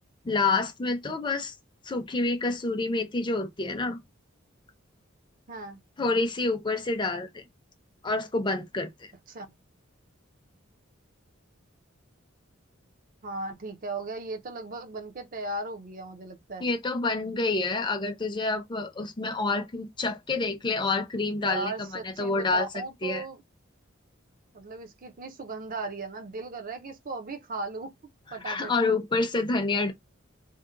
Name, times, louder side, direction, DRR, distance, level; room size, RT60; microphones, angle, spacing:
voice 1, 0.2-1.5 1.8-4.0 6.0-7.4 8.0-9.1 16.6-22.7 23.0-23.2 28.4-29.9, left 3 dB, 20° left, 0.6 m, -28 dB
voice 2, 5.5-5.8 9.3-9.5 13.2-16.7 21.4-23.4 24.5-27.9 28.3-28.7, right 2 dB, 40° right, 0.6 m, -37 dB
2.7 x 2.1 x 3.7 m
head